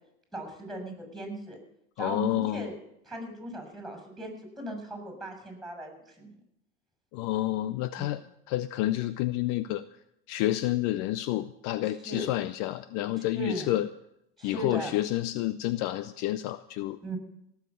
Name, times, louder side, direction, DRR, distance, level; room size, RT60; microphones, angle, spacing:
voice 1, 0.3-1.6 2.0-2.7 3.0-6.4 8.0-8.1 12.0-12.3 13.1-13.8 14.4-14.9 17.0-17.2, right 1 dB, ahead, 5 dB, 6.8 m, -38 dB
voice 2, 2.0-2.7 7.1-8.2 8.5-9.8 10.3-13.9 14.4-17.1, left 15 dB, 55° left, 15 dB, 0.6 m, -29 dB
17.5 x 7.2 x 8.5 m, 0.78 s
hypercardioid pair, 80°, 34 cm